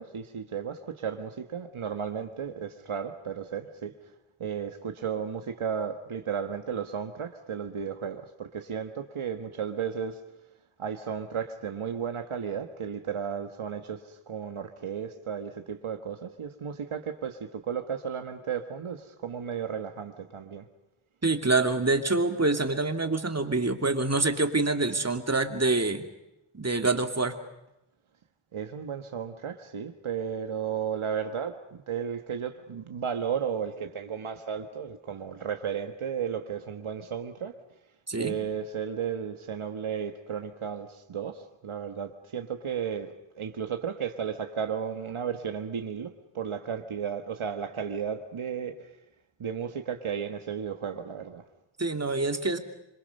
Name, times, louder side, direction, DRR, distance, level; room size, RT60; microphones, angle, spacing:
voice 1, 0.0-3.9 4.4-10.2 10.8-20.7 28.5-37.6 38.2-48.9 49.4-51.4, right 7 dB, 85° right, 6 dB, 1.5 m, -34 dB
voice 2, 21.2-26.0 26.5-27.3 38.1-38.4 51.8-52.6, right 3 dB, 30° right, 6 dB, 2.7 m, -26 dB
26.5 x 26.5 x 5.5 m, 0.90 s
wide cardioid pair, 70°, 48 cm